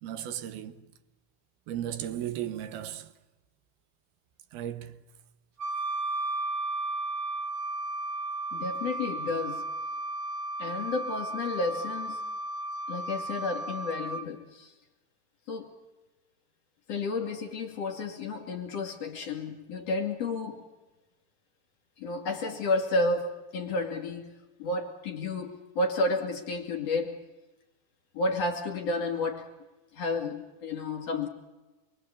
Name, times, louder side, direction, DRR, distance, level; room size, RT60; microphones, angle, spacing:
voice 1, 0.0-0.8 1.7-3.1 4.5-5.0, right 11 dB, 85° right, 3.1 m, -35 dB
Wind instrument woodwind instrument, 5.6-14.2, right 2 dB, 30° right, 2.3 m, -34 dB
voice 2, 8.5-9.6 10.6-12.3 12.9-14.7 15.5-15.7 16.9-20.6 22.0-24.3 24.6-27.2 28.1-29.5 29.9-31.3, left 2 dB, 45° left, 3.3 m, -31 dB
27.5 x 22.0 x 8.5 m
omnidirectional pair, 4.3 m